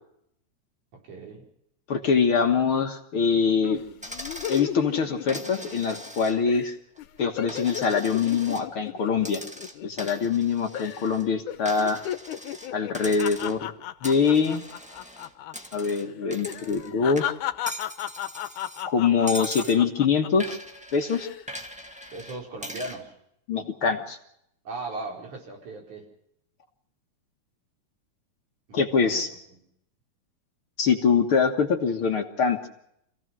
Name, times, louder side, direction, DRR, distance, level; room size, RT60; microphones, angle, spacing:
voice 1, 0.9-1.5 22.1-23.1 24.6-26.1 28.7-29.6, right 2 dB, 80° right, 1 dB, 6.2 m, -38 dB
voice 2, 1.9-3.8 4.5-6.8 7.2-9.4 9.8-12.0 12.7-13.7 14.0-14.6 15.7-17.2 18.9-20.6 20.9-21.3 23.5-24.2 28.7-29.3 30.8-32.6, left 5 dB, 50° left, 4 dB, 2.0 m, -24 dB
sound 1, 3.6-6.2 6.5-6.7 7.0-10.4 10.7-11.2 11.5-15.5 15.8-16.0 16.4-20.5 21.0-21.4, left 11 dB, 85° left, 2.5 m, -35 dB
Coin (dropping), 4.0-4.7 5.3-6.6 7.0-8.7 9.2-11.2 11.7-12.7 12.9-13.7 14.0-16.9 17.2-18.9 19.3-19.8 20.4-23.0, equal, 5° right, 1.2 m, -41 dB
27.5 x 16.5 x 6.1 m, 0.75 s
omnidirectional pair, 3.4 m